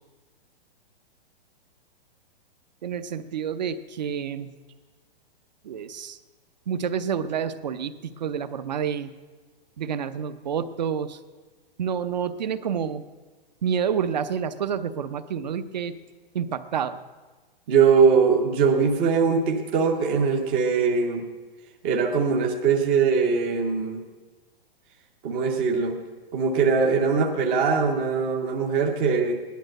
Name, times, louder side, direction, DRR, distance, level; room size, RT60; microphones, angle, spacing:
voice 1, 2.8-4.5 5.6-6.2 6.7-9.1 9.8-11.2 11.8-13.0 13.6-16.0 16.3-17.0, right 7 dB, 45° right, 11 dB, 0.7 m, -28 dB
voice 2, 17.7-21.2 21.8-24.0 25.2-26.0 26.3-29.4, right 5 dB, 10° right, 1 dB, 0.6 m, -21 dB
17.0 x 11.5 x 6.5 m, 1.4 s
hypercardioid pair, 180°, 29 cm